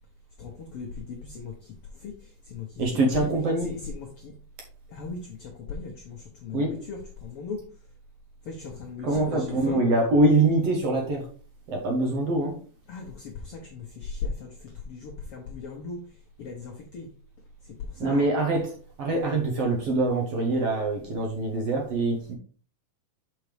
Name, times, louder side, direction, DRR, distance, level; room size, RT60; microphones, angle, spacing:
voice 1, 0.4-3.3 3.6-4.4 4.9-7.6 8.4-9.8 12.9-17.1 17.6-18.3, left 4 dB, 80° left, 1.3 m, -38 dB
voice 2, 2.8-3.7 6.5-6.8 9.0-11.3 11.7-12.6 18.0-18.7 19.0-22.3, right 2 dB, 65° right, 1.7 m, -24 dB
7.0 x 5.3 x 3.3 m
omnidirectional pair, 3.9 m